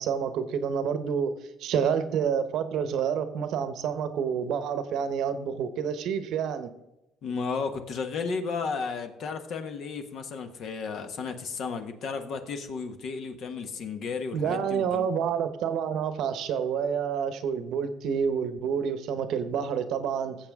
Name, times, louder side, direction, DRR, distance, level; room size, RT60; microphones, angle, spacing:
voice 1, 0.0-6.7 14.3-20.4, right 7 dB, 65° right, 11 dB, 1.0 m, -28 dB
voice 2, 7.2-15.1, left 5 dB, 55° left, 7 dB, 1.4 m, -33 dB
18.0 x 7.5 x 3.7 m, 0.90 s
cardioid pair, 135°, 0 cm